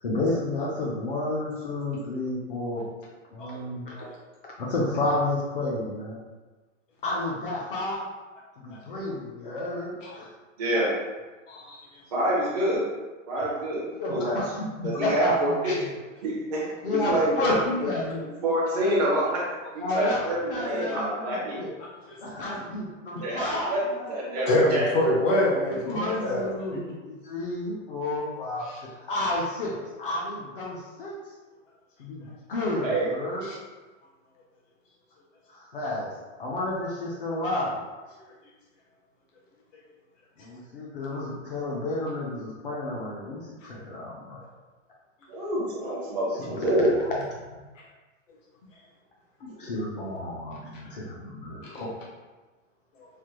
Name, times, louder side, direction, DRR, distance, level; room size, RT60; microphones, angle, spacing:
voice 1, 0.0-2.9 3.3-4.1 4.6-6.2 7.0-8.0 8.6-10.3 14.0-15.9 16.8-18.2 19.8-21.7 22.2-24.5 25.7-31.2 32.0-33.5 35.5-36.1 36.4-37.8 40.4-44.5 46.4-46.6 47.1-47.6 49.4-51.9, left 2 dB, 45° left, -3 dB, 0.5 m, -31 dB
voice 2, 10.6-10.9 12.1-12.8 13.3-13.8 14.1-14.4 14.8-15.8 16.2-16.6 16.9-17.6 18.4-21.6 23.2-23.8 24.1-24.9 32.8-33.1 45.3-47.0 49.6-49.7, right 1 dB, 35° right, -7 dB, 0.4 m, -26 dB
voice 3, 11.5-11.8 15.6-15.7 24.5-26.8 28.7-28.8 33.5-33.6 43.6-43.7 51.7-51.8 53.0-53.1, left 1 dB, 75° left, -5 dB, 1.0 m, -26 dB
3.3 x 2.1 x 2.9 m, 1.2 s
supercardioid pair, 180°, 39 cm